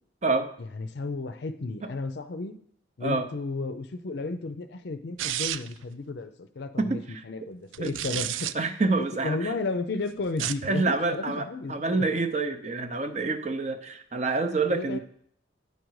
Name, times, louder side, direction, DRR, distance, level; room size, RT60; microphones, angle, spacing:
voice 1, 0.7-2.6 3.0-8.5 8.9-12.1 14.7-15.0, left 3 dB, 55° left, 9 dB, 0.5 m, -33 dB
sound 1, 5.2-5.8 7.7-8.5 10.3-10.7, right 12 dB, 80° right, 0.3 m, -31 dB
voice 2, 6.8-7.2 7.8-7.9 8.5-9.5 10.6-15.0, right 3 dB, 35° right, 7 dB, 0.6 m, -27 dB
9.3 x 5.1 x 4.7 m, 0.66 s
head